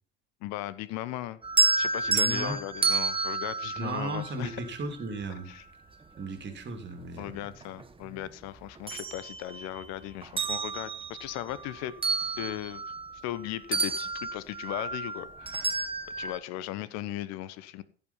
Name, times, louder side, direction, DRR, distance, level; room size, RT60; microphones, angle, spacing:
voice 1, 0.4-1.4 1.8-4.6 5.5-5.6 7.2-11.9 12.4-12.8 13.2-15.8 16.2-17.8, left 13 dB, 50° left, 17 dB, 1.0 m, -37 dB
sound 1, 1.4-4.8 6.4-6.5 7.0-8.3 8.6-9.9 10.2-13.4 13.7-16.4, right 3 dB, 15° right, 1.1 m, -30 dB
voice 2, 2.1-2.6 3.8-5.5 6.2-7.4, right 2 dB, 30° right, 6 dB, 2.9 m, -35 dB
15.0 x 5.6 x 5.6 m, 0.41 s
figure-of-eight pair, 70°, 33 cm